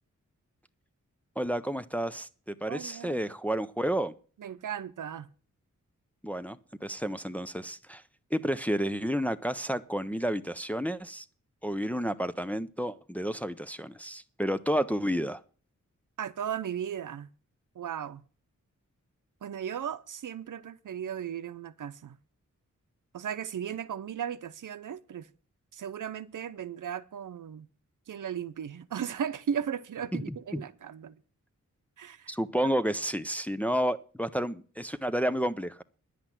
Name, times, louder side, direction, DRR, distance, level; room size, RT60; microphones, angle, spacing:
voice 1, 1.4-4.1 6.2-8.0 8.3-11.2 11.6-15.4 30.1-30.6 32.3-35.8, equal, 5° left, 0.5 m, -31 dB
voice 2, 2.7-3.2 4.4-5.3 16.2-17.3 17.7-18.2 19.4-22.2 23.1-25.3 25.7-27.7 28.1-31.2 32.0-32.3, right 8 dB, 85° right, 0.8 m, -36 dB
10.5 x 8.0 x 7.3 m
wide cardioid pair, 160°, 31 cm